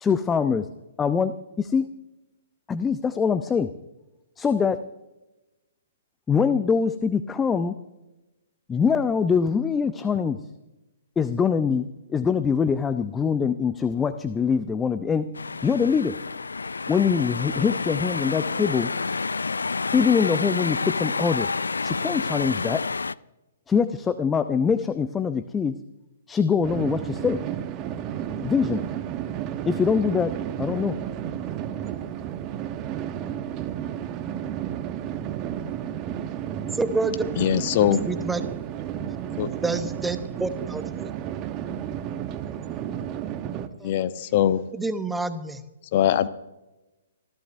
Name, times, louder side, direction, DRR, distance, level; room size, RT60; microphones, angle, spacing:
voice 1, 0.0-0.7 1.0-1.9 2.7-3.7 4.4-4.8 6.3-7.8 8.7-10.4 11.2-15.3 15.6-16.1 16.9-18.9 19.9-21.5 21.8-22.8 23.7-25.8 26.3-27.4 28.4-28.8 29.7-31.0, left 6 dB, 15° left, 12 dB, 0.6 m, -23 dB
sound 1, 15.3-23.2, left 4 dB, 75° left, 0.4 m, -29 dB
sound 2, 26.6-43.7, right 10 dB, 25° right, 1.1 m, -32 dB
voice 2, 36.7-37.2 38.1-38.4 39.6-41.1 43.8-43.9 44.7-45.6, right 3 dB, 5° right, 11 dB, 1.0 m, -28 dB
voice 3, 37.4-38.0 39.4-39.5 43.8-44.6 45.9-46.3, left 11 dB, 40° left, 13 dB, 0.9 m, -21 dB
25.0 x 15.0 x 2.7 m, 1.0 s
figure-of-eight pair, 120°, 0 cm